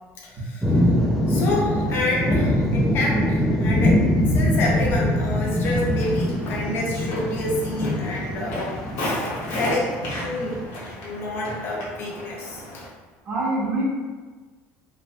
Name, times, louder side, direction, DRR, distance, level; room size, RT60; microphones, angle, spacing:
voice 1, 0.2-0.9 1.3-9.1 9.5-10.7 11.0-12.9, left 2 dB, 40° left, -3 dB, 0.6 m, -28 dB
sound 1, 0.6-10.6, left 1 dB, ahead, 0.3 m, -23 dB
Walk footsteps, 5.5-12.9, left 1 dB, 60° left, 0.9 m, -34 dB
voice 2, 9.1-9.6 13.2-13.8, right 2 dB, 30° right, -7 dB, 0.8 m, -27 dB
3.1 x 2.0 x 2.7 m, 1.4 s
cardioid pair, 160°, 6 cm